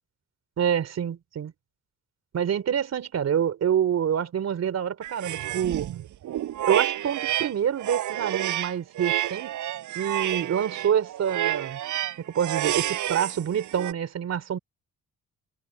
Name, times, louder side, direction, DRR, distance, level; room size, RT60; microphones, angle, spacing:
voice 1, 0.6-1.5 2.3-5.9 6.7-9.5 9.9-11.8 12.2-14.6, right 9 dB, 60° right, 3.3 m, -27 dB
sound 1, 5.0-7.5 7.8-13.9, right 12 dB, 80° right, 6.3 m, -29 dB
cardioid pair, 90°, 30 cm